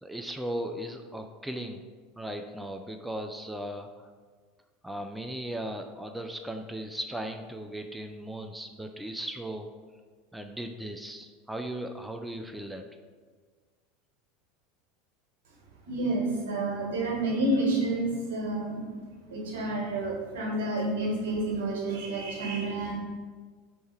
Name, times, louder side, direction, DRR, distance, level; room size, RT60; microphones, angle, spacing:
voice 1, 0.0-1.8 2.2-4.1 4.8-9.7 10.3-12.9, right 1 dB, 5° right, 5 dB, 0.3 m, -37 dB
voice 2, 15.9-18.8 19.3-22.9, right 2 dB, 75° right, -1 dB, 1.1 m, -29 dB
3.2 x 3.2 x 4.4 m, 1.5 s
hypercardioid pair, 90°, 0 cm